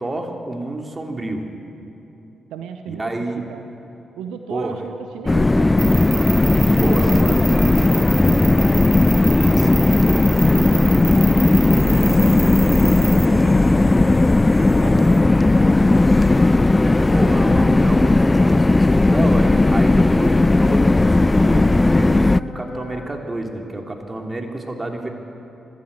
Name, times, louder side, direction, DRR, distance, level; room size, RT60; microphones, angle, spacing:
voice 1, 0.0-1.5 2.9-3.4 4.5-4.8 6.8-7.4 9.3-10.0 12.1-12.5 16.9-25.1, right 2 dB, 30° right, 3 dB, 3.1 m, -29 dB
voice 2, 2.5-3.7 4.2-6.3 6.6-8.9 10.5-11.3 12.8-14.2 14.8-15.9, right 7 dB, 80° right, 7 dB, 0.8 m, -36 dB
sound 1, 5.3-22.4, left 2 dB, 25° left, 0.4 m, -15 dB
sound 2, 5.8-13.3, right 6 dB, 55° right, 0.5 m, -29 dB
Wind instrument woodwind instrument, 7.6-23.1, left 2 dB, 50° left, 4.0 m, -36 dB
24.0 x 13.5 x 8.3 m, 2.8 s
hypercardioid pair, 40°, 0 cm